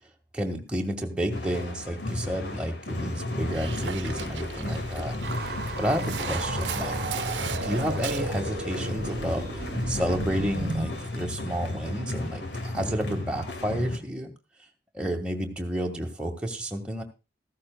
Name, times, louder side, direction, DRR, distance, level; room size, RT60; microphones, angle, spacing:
voice 1, 0.3-5.2 5.8-7.0 7.6-14.3 14.9-17.0, equal, 5° right, 1 dB, 1.9 m, -31 dB
sound 1, 1.3-14.0, left 2 dB, 70° left, 2.0 m, -34 dB
Dog, 3.5-8.4, right 6 dB, 90° right, 1.0 m, -37 dB
sound 2, 5.2-10.9, right 2 dB, 55° right, 1.1 m, -34 dB
14.5 x 14.5 x 2.3 m, 0.29 s
head